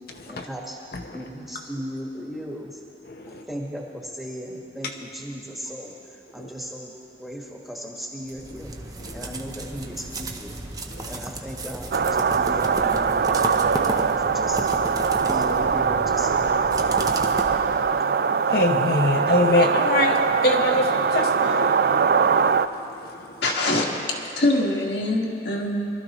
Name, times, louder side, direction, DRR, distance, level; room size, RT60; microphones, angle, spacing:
voice 1, 0.3-0.8 1.1-2.8 3.3-8.7 9.1-10.5 11.0-14.7 15.2-17.7, equal, ahead, -3 dB, 1.5 m, -37 dB
voice 2, 3.1-3.4 6.4-6.5 9.0-9.2 10.9-11.1 15.1-15.3 18.1-23.4, left 2 dB, 55° left, 2 dB, 0.8 m, -25 dB
sound 1, 8.3-18.0, right 1 dB, 20° right, 0.7 m, -34 dB
sound 2, 11.9-22.7, right 6 dB, 50° right, 0.3 m, -22 dB
voice 3, 23.4-25.9, left 1 dB, 75° left, -2 dB, 1.8 m, -24 dB
23.5 x 13.0 x 3.1 m, 2.9 s
head